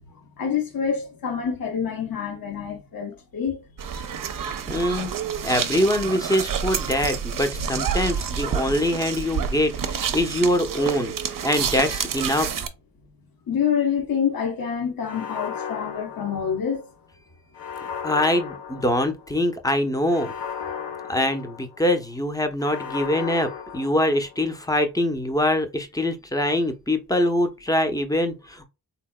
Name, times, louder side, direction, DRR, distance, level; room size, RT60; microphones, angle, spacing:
voice 1, 0.4-3.6 7.7-7.8 8.7-8.8 13.5-16.8, left 7 dB, 60° left, 1.0 m, -27 dB
sound 1, 3.8-12.7, right 7 dB, 55° right, 0.6 m, -29 dB
voice 2, 4.7-5.1 5.4-11.1 11.4-12.5 18.0-20.3 21.1-28.7, left 1 dB, 10° left, 0.7 m, -24 dB
sound 2, 15.0-16.9 17.5-19.4 20.1-21.9 22.6-24.5, left 7 dB, 90° left, 0.7 m, -35 dB
3.4 x 2.9 x 2.2 m
cardioid pair, 50°, 39 cm